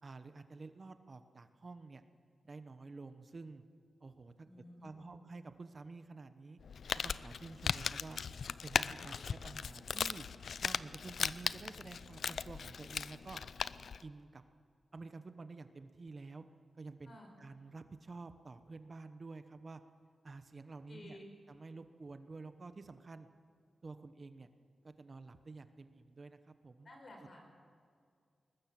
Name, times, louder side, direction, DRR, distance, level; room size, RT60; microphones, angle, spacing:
voice 1, 0.0-2.0 2.4-3.6 4.0-6.6 7.0-8.2 8.6-10.3 10.6-13.4 14.0-14.4 14.9-16.4 16.8-19.8 20.2-21.2 21.5-23.3 23.8-24.5 24.8-26.9, right 3 dB, 40° right, 10 dB, 1.0 m, -50 dB
voice 2, 4.4-5.2 9.0-9.5 17.0-17.3 20.9-21.4 26.8-27.5, left 1 dB, 50° left, 2 dB, 5.2 m, -54 dB
Crumpling crinkling, 6.6-14.0, left 6 dB, 75° left, 0.5 m, -38 dB
22.0 x 20.0 x 7.5 m, 2.2 s
wide cardioid pair, 125°, 0 cm